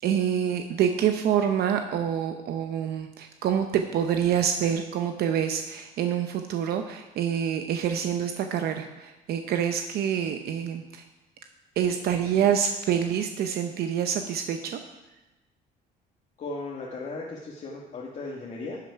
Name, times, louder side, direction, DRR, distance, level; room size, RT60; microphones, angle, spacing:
voice 1, 0.0-11.0 11.8-14.8, right 8 dB, 70° right, 6 dB, 0.8 m, -26 dB
voice 2, 16.4-18.8, left 3 dB, 45° left, -3 dB, 1.6 m, -36 dB
12.0 x 7.5 x 4.7 m, 1.0 s
cardioid pair, 110°, 17 cm